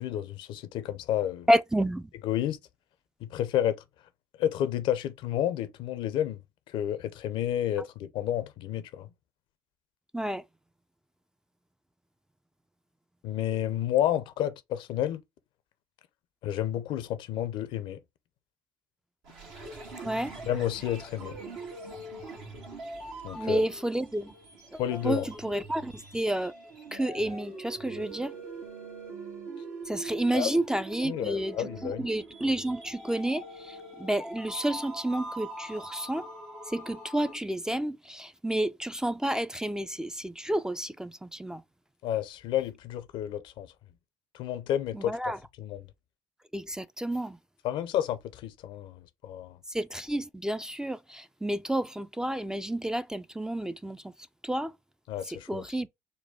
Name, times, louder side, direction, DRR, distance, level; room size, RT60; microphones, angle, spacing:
voice 1, 0.0-1.5 2.2-2.6 3.2-3.8 4.4-6.4 6.7-9.1 13.2-15.2 16.4-18.0 20.5-21.3 23.2-23.7 24.8-25.3 30.3-30.5 31.0-32.1 42.0-43.7 44.3-45.3 45.6-45.9 47.6-49.6 55.1-55.7, left 11 dB, 70° left, 0.5 m, -30 dB
voice 2, 1.5-2.1 10.1-10.4 20.0-20.3 23.3-24.3 24.7-26.5 26.9-28.3 29.9-36.3 36.7-41.6 44.9-45.4 46.5-47.4 49.7-54.1 54.4-54.7 55.3-55.9, right 1 dB, 5° right, 0.3 m, -30 dB
sound 1, 19.2-37.4, right 2 dB, 75° right, 1.6 m, -43 dB
4.0 x 2.2 x 3.5 m
hypercardioid pair, 55°, 9 cm